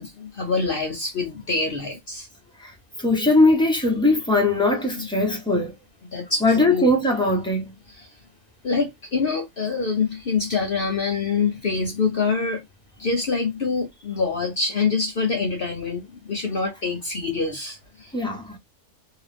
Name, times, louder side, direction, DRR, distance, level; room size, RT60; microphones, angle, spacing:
voice 1, 0.0-2.3 5.0-5.4 6.1-6.9 7.9-8.1 8.6-12.6 13.0-18.1, left 4 dB, 60° left, 0.5 m, -25 dB
voice 2, 3.0-5.7 6.4-7.7 18.1-18.6, left 2 dB, 5° left, 0.5 m, -20 dB
2.8 x 2.4 x 3.3 m
omnidirectional pair, 1.6 m